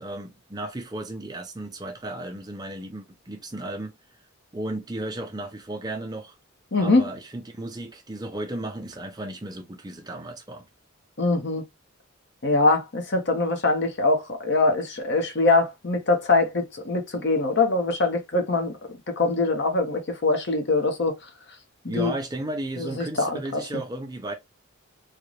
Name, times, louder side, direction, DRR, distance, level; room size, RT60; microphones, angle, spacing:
voice 1, 0.0-3.9 4.5-6.4 6.8-10.7 21.8-24.3, right 1 dB, 20° right, 0.5 m, -34 dB
voice 2, 6.7-7.1 11.2-11.6 12.4-18.7 19.1-21.2 21.8-22.1 22.8-23.6, left 3 dB, 50° left, 0.9 m, -23 dB
3.8 x 2.3 x 3.1 m
head